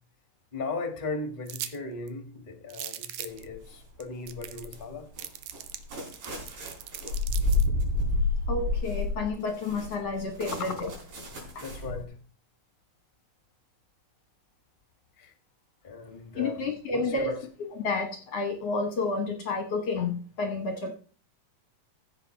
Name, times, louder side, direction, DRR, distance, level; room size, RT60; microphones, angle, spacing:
voice 1, 0.5-5.1 11.6-12.1 15.2-15.3 15.8-16.6 16.9-17.4, left 3 dB, 25° left, 1.0 m, -37 dB
sound 1, 1.5-1.8 2.1-2.2 2.7-3.4 4.0-4.1 4.3-4.8 5.2-7.7, right 12 dB, 70° right, 2.0 m, -39 dB
sound 2, 3.3-3.8 4.3-12.0, left 2 dB, 90° right, 6.0 m, -30 dB
voice 2, 8.5-10.9 11.3-11.6 16.4-17.3 17.8-20.9, left 3 dB, 60° left, 1.7 m, -30 dB
15.0 x 6.8 x 4.5 m
omnidirectional pair, 4.0 m